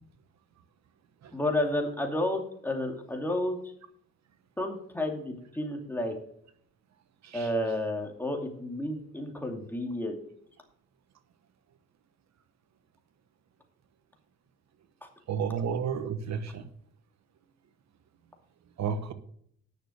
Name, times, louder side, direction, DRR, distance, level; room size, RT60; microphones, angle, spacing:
voice 1, 1.3-3.6 4.6-6.1 7.3-10.2 15.0-15.1, left 1 dB, 5° left, 2 dB, 2.5 m, -31 dB
voice 2, 15.3-16.7 18.8-19.1, right 6 dB, 65° right, 11 dB, 1.2 m, -31 dB
10.0 x 6.7 x 6.3 m, 0.66 s
cardioid pair, 90°, 30 cm